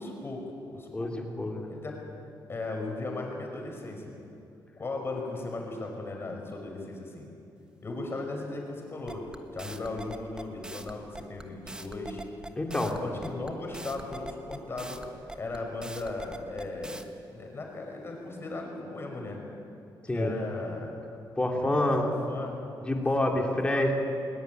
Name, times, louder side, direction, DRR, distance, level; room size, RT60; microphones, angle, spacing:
voice 1, 0.0-1.1 1.7-2.0 2.5-4.2 4.8-7.3 7.8-12.2 12.8-15.1 15.3-17.0 17.3-19.4 20.1-20.9 21.6-22.6 23.3-23.9, left 2 dB, 30° left, 1 dB, 5.6 m, -37 dB
voice 2, 0.9-1.7 12.6-12.9 20.0-20.3 21.4-22.1 22.8-23.9, left 1 dB, 15° left, 1 dB, 3.2 m, -27 dB
sound 1, 9.1-17.0, right 1 dB, 10° right, 1.3 m, -42 dB
20.5 x 19.5 x 9.3 m, 2.6 s
cardioid pair, 120°, 8 cm